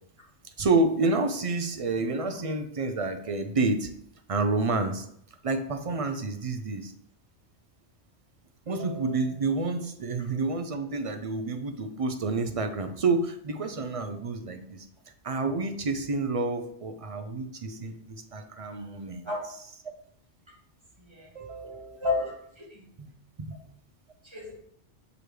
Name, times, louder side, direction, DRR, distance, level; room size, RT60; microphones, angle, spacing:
voice 1, 0.6-3.9 4.3-5.1 5.4-6.9 8.7-14.9 15.2-19.3 21.3-22.0 23.0-23.1 23.4-23.6, right 3 dB, 50° right, 7 dB, 0.4 m, -29 dB
voice 2, 21.0-21.3 22.0-22.8 24.2-24.5, left 3 dB, 25° right, -4 dB, 2.1 m, -31 dB
6.0 x 4.9 x 3.3 m, 0.69 s
omnidirectional pair, 1.2 m